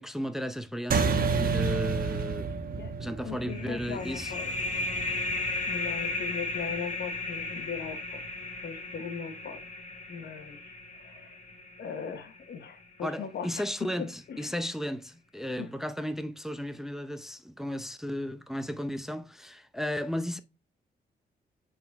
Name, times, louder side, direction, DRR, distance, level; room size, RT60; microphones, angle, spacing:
voice 1, 0.0-2.5 3.0-4.3 13.0-20.4, equal, ahead, 0.6 m, -34 dB
sound 1, 0.9-5.7, right 4 dB, 55° right, 1.0 m, -30 dB
voice 2, 3.2-4.5 5.6-8.2 8.6-9.6 10.1-11.4 11.8-14.6 15.6-15.7, left 7 dB, 75° left, 1.1 m, -39 dB
sound 2, 3.5-12.8, left 2 dB, 45° left, 1.6 m, -35 dB
8.6 x 4.0 x 3.5 m
cardioid pair, 90°, 18 cm